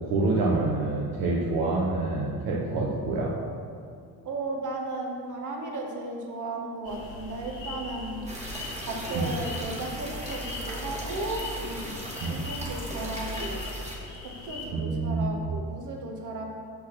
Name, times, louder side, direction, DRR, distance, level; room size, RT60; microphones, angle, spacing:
voice 1, 0.0-3.4 9.1-9.3 12.2-12.4 14.7-15.4, right 3 dB, 70° right, -3 dB, 1.2 m, -27 dB
voice 2, 4.2-8.3 8.8-11.9 12.2-13.6 14.4-16.4, right 2 dB, 50° right, 1 dB, 1.6 m, -35 dB
sound 1, 6.8-14.7, left 2 dB, 75° left, 2.0 m, -39 dB
sound 2, 8.3-14.0, right 1 dB, 15° right, 1.9 m, -38 dB
6.4 x 5.9 x 6.1 m, 2.3 s
cardioid pair, 90°, 38 cm